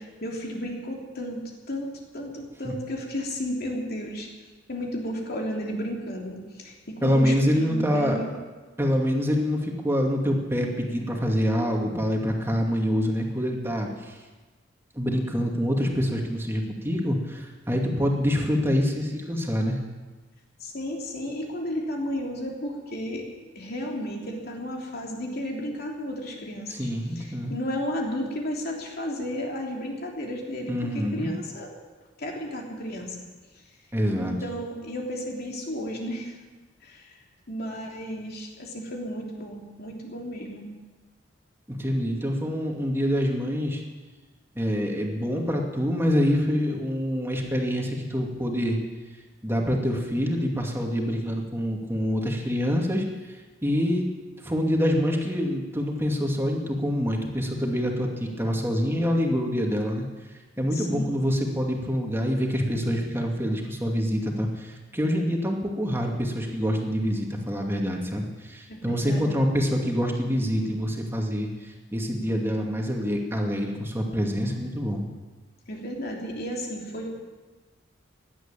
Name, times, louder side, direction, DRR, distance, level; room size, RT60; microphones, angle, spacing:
voice 1, 0.0-4.3 4.7-8.3 20.6-23.2 23.5-26.9 27.1-31.7 32.2-33.2 34.2-36.3 36.8-37.1 37.5-40.7 60.7-61.2 68.7-69.4 75.7-77.1, equal, 55° left, 0 dB, 3.2 m, -33 dB
voice 2, 7.0-8.2 8.8-14.1 14.9-19.8 26.7-27.5 30.7-31.3 33.9-34.3 41.7-43.8 44.6-48.8 49.4-53.0 53.6-54.1 54.4-60.0 60.6-75.0, equal, 15° right, 0 dB, 2.4 m, -26 dB
17.0 x 11.5 x 7.5 m, 1.3 s
head